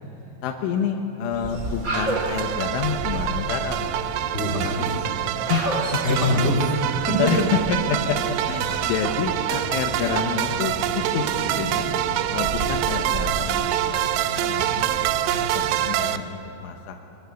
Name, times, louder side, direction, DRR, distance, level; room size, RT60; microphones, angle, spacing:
voice 1, 0.4-4.1 5.5-5.7 6.1-6.5 7.2-7.4 7.7-11.9 12.3-14.1 14.4-17.0, left 6 dB, 85° left, 3 dB, 3.7 m, -29 dB
sound 1, 1.3-16.2, right 1 dB, 25° right, 1.9 m, -33 dB
sound 2, 1.9-16.2, right 13 dB, 80° right, 2.6 m, -26 dB
voice 2, 4.3-5.4 5.9-6.8 7.1-7.2, left 1 dB, 20° left, 1 dB, 1.9 m, -25 dB
sound 3, 5.6-14.4, right 2 dB, 55° right, 3.3 m, -43 dB
22.0 x 21.5 x 9.4 m, 2.8 s
omnidirectional pair, 5.5 m